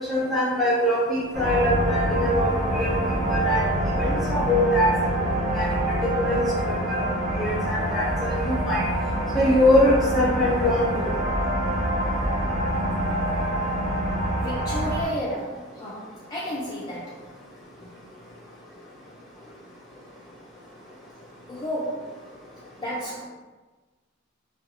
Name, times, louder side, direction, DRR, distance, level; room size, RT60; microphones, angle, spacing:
voice 1, 0.1-3.0 3.3-4.9 5.5-7.0 7.3-8.8 9.3-11.1, left 1 dB, ahead, -8 dB, 0.8 m, -23 dB
sound 1, 1.3-15.0, right 1 dB, 35° right, 0.6 m, -26 dB
voice 2, 14.3-17.2 21.5-22.2 22.8-23.2, equal, 20° left, -8 dB, 0.4 m, -32 dB
2.6 x 2.3 x 2.8 m, 1.2 s
head